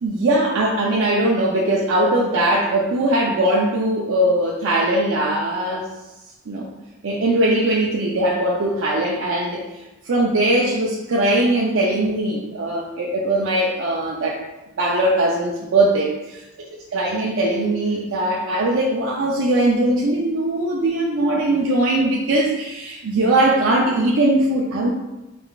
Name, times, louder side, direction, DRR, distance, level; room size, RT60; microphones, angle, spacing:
voice 1, 0.0-5.9 6.5-6.7 7.0-9.6 10.1-14.4 14.8-16.4 16.9-24.9, right 1 dB, 75° right, -2 dB, 0.5 m, -20 dB
4.4 x 3.8 x 2.3 m, 1.0 s
head